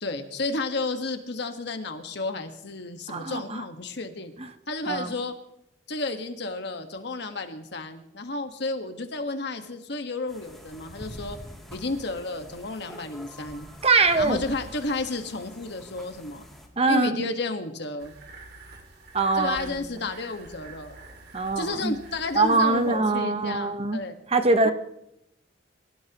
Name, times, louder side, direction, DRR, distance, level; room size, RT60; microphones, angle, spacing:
voice 1, 0.0-4.3 4.7-5.3 5.9-11.4 11.7-13.7 14.2-16.5 16.9-18.1 19.3-21.0 21.6-24.2 24.6-24.7, left 2 dB, 65° left, 6 dB, 1.6 m, -32 dB
voice 2, 3.1-3.4 4.9-5.1 13.8-14.4 16.8-17.3 19.1-19.7 21.3-22.0 22.3-24.0 24.3-24.7, right 3 dB, 35° right, 8 dB, 1.1 m, -22 dB
sound 1, 10.3-16.7, equal, ahead, 2.9 m, -45 dB
sound 2, 18.0-23.0, right 3 dB, 60° right, 2.5 m, -47 dB
26.0 x 15.0 x 3.1 m, 0.81 s
head